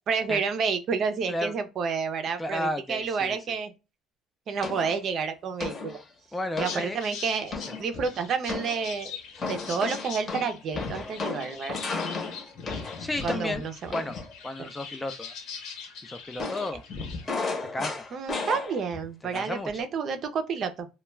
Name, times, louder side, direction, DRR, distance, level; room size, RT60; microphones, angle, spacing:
voice 1, 0.1-3.7 4.5-6.0 6.6-9.2 9.5-11.8 12.7-12.8 13.2-13.9 14.6-14.7 18.1-20.9, right 5 dB, 45° right, 0.5 m, -30 dB
voice 2, 2.4-3.4 6.3-7.0 12.7-13.6 13.9-14.1 14.4-15.3 16.0-16.8 17.7-18.0 19.3-19.9, left 1 dB, 15° left, 0.3 m, -33 dB
sound 1, 4.6-5.0 5.6-6.0 6.6-6.8 7.5-8.1 8.5-8.9 9.4-14.3 16.4-19.1 19.3-19.7, left 4 dB, 30° left, 0.8 m, -34 dB
sound 2, 6.6-17.3, left 6 dB, 75° left, 1.0 m, -43 dB
2.2 x 2.2 x 3.0 m
cardioid pair, 120°, 0 cm